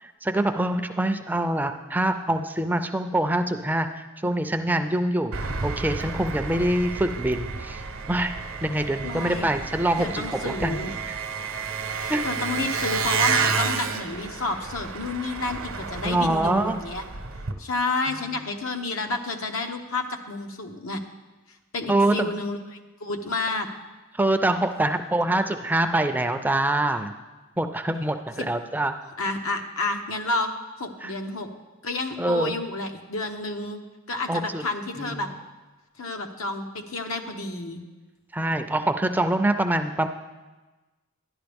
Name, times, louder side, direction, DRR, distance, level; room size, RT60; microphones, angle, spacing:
voice 1, 0.0-5.3 5.6-7.8 8.1-8.3 8.6-10.8 12.1-12.2 16.0-16.8 21.9-22.3 24.2-27.1 27.6-28.9 31.0-31.1 32.2-32.5 34.3-34.6 35.0-35.3 38.3-40.1, right 1 dB, 10° right, 7 dB, 0.4 m, -25 dB
Engine, 5.3-17.5, right 5 dB, 70° right, 0.8 m, -30 dB
voice 2, 9.0-9.5 10.0-10.9 12.0-17.0 17.6-21.0 21.7-22.6 23.0-23.7 28.4-28.5 29.2-30.5 30.8-31.5 31.8-33.8 34.1-35.3 36.0-37.8, left 2 dB, 80° left, 5 dB, 1.0 m, -30 dB
11.5 x 11.0 x 3.5 m, 1.2 s
head